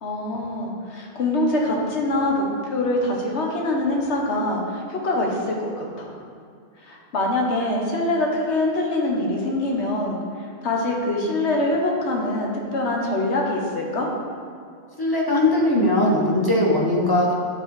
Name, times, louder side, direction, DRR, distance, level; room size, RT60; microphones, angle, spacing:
voice 1, 0.0-6.2 6.8-10.2 10.6-14.1, left 1 dB, 80° left, -1 dB, 1.4 m, -24 dB
voice 2, 15.0-17.3, left 1 dB, 20° left, -4 dB, 1.1 m, -19 dB
9.6 x 3.9 x 4.8 m, 2.3 s
omnidirectional pair, 1.1 m